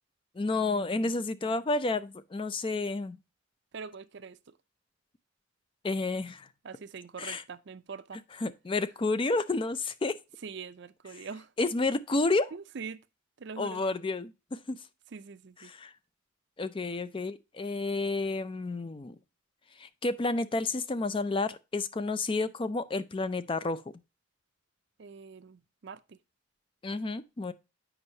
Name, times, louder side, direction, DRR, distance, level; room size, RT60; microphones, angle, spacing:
voice 1, 0.4-3.2 5.8-6.5 7.2-7.4 8.3-10.2 11.1-11.3 11.6-12.5 13.6-14.8 15.6-15.9 16.6-19.2 19.8-23.8 26.8-27.5, left 3 dB, 25° left, 0.4 m, -30 dB
voice 2, 3.7-4.4 6.6-8.2 10.4-11.5 12.5-13.0 13.4-13.8 15.1-15.7 25.0-26.2, right 5 dB, 60° right, 0.5 m, -43 dB
8.0 x 5.4 x 2.7 m
head